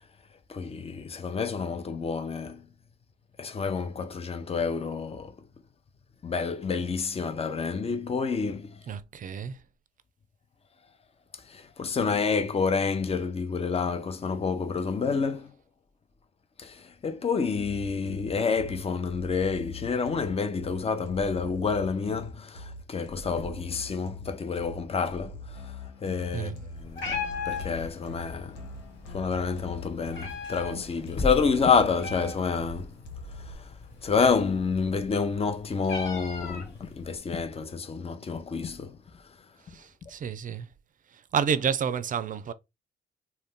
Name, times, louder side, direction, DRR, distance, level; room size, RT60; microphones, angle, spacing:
voice 1, 0.5-2.7 3.4-5.5 6.2-8.8 11.3-15.5 16.6-28.6 29.1-32.9 33.3-33.7 34.0-39.2 39.7-39.8 40.0-40.1, left 5 dB, 30° left, 0.6 m, -29 dB
voice 2, 8.9-9.6 26.3-26.6 39.7-40.7 41.1-42.5, right 7 dB, 40° right, 0.4 m, -30 dB
sound 1, 17.6-33.6, left 2 dB, 90° left, 0.7 m, -43 dB
Meow, 26.8-37.2, left 5 dB, 65° left, 1.4 m, -40 dB
2.4 x 2.2 x 3.6 m
hypercardioid pair, 50°, 20 cm